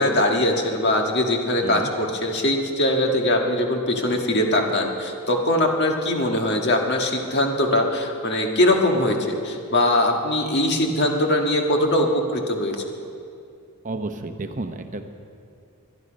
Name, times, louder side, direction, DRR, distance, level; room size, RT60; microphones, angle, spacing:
voice 1, 0.0-9.2 9.4-12.8, left 1 dB, 50° left, 2 dB, 1.7 m, -21 dB
voice 2, 13.8-15.0, right 2 dB, 35° right, 7 dB, 0.9 m, -31 dB
22.0 x 11.0 x 5.2 m, 2.4 s
head